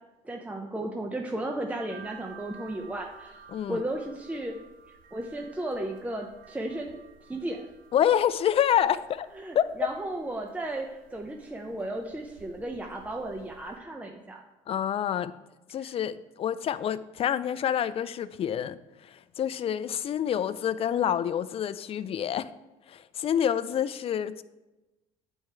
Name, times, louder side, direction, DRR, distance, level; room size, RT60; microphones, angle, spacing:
voice 1, 0.2-3.4 3.7-4.6 5.1-7.6 9.4-14.4 15.8-15.9, right 1 dB, 10° right, 2 dB, 0.7 m, -35 dB
sound 1, 1.9-13.8, right 6 dB, 80° right, 1.1 m, -54 dB
voice 2, 3.5-3.8 7.9-9.3 9.5-9.7 14.7-15.3 15.7-22.5 22.9-24.4, left 9 dB, 45° left, 14 dB, 0.4 m, -27 dB
8.6 x 4.4 x 4.6 m, 1.0 s
supercardioid pair, 90°, 14 cm